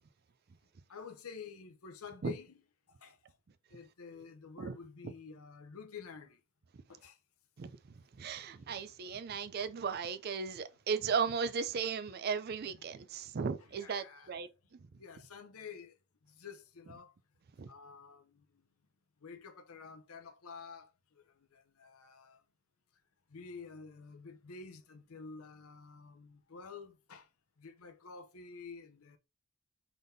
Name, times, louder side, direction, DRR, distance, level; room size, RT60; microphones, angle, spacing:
voice 1, 0.9-2.6 3.0-3.2 3.7-6.4 6.9-7.2 12.7-12.8 13.6-14.4 15.0-15.9 16.3-17.1 17.7-18.4 19.2-20.9 21.5-22.4 23.3-27.3 27.6-29.2, left 5 dB, 80° left, 0.7 m, -49 dB
voice 2, 8.2-14.8 17.6-17.7, right 6 dB, 45° right, 0.4 m, -36 dB
3.8 x 3.5 x 2.6 m
head